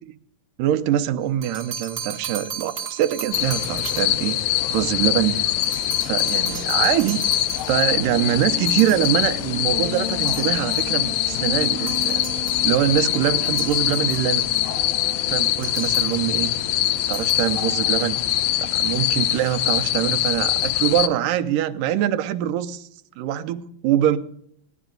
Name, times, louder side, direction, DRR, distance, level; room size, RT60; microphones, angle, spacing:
voice 1, 0.6-4.4 4.7-5.5 6.1-7.2 7.7-12.3 12.6-14.4 15.3-16.5 17.1-18.2 18.6-22.9 23.2-24.2, right 11 dB, 75° right, 8 dB, 2.2 m, -23 dB
sound 1, 1.2-4.3 5.6-8.1 8.7-9.4 10.3-11.0 11.9-12.7 13.5-14.7 15.6-16.3 17.0-17.6, right 6 dB, 45° right, 1.2 m, -36 dB
sound 2, 3.3-21.1, left 13 dB, 80° left, 2.4 m, -23 dB
sound 3, 8.1-17.2, left 2 dB, 50° left, 7.0 m, -36 dB
18.0 x 10.5 x 3.8 m, 0.69 s
omnidirectional pair, 4.1 m